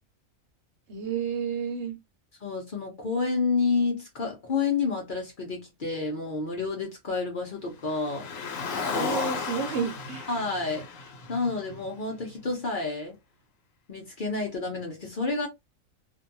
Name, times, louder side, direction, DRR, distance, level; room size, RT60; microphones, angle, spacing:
voice 1, 0.9-2.0 8.9-10.3, right 6 dB, 60° right, 0.9 m, -31 dB
voice 2, 2.4-8.3 8.7-9.2 10.3-10.9 11.3-13.1 13.9-15.5, left 4 dB, 45° left, 0.8 m, -29 dB
Car, 7.9-12.3, left 5 dB, 75° left, 1.1 m, -34 dB
2.6 x 2.2 x 2.6 m
omnidirectional pair, 1.4 m